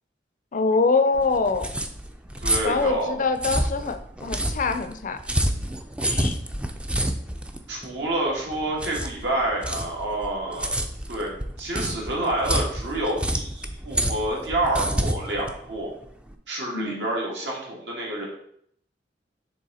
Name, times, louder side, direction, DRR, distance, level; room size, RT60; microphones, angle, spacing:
voice 1, 0.5-1.7 2.6-5.2 6.0-6.4 16.7-17.1, left 4 dB, 50° left, 9 dB, 0.5 m, -24 dB
sound 1, 1.1-16.3, right 1 dB, 5° right, 0.4 m, -29 dB
voice 2, 2.4-3.2 7.7-10.7 11.1-11.3 11.6-15.9 16.5-18.3, right 1 dB, 80° right, -3 dB, 2.0 m, -28 dB
6.3 x 3.6 x 4.2 m, 0.67 s
head